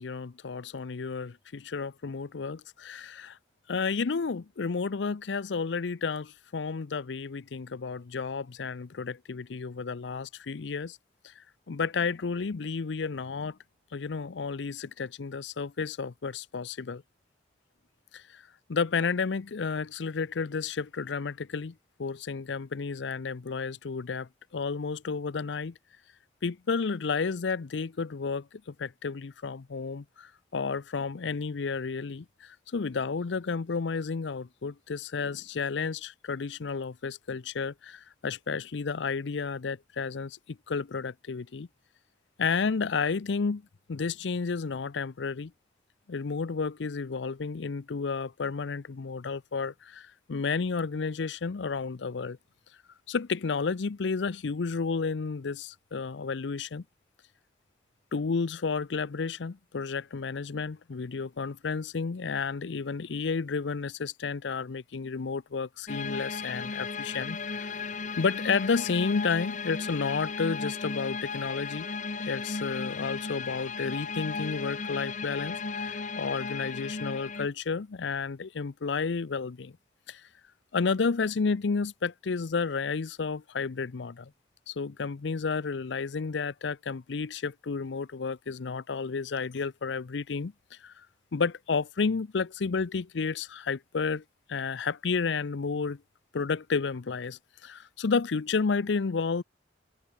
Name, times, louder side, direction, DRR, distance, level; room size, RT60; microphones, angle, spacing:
voice 1, 0.0-3.4 3.7-11.0 11.4-13.6 13.9-17.0 18.1-18.4 18.7-21.7 22.0-25.7 26.4-41.7 42.4-43.6 43.9-45.5 46.1-52.4 53.1-56.8 58.1-67.8 68.2-71.9 72.2-79.7 80.1-80.2 80.7-84.3 84.7-90.9 91.3-94.2 94.5-96.0 96.3-99.4, left 5 dB, 80° left, 0.6 m, -31 dB
sound 1, 65.9-77.5, left 4 dB, 45° left, 1.2 m, -35 dB
open air
head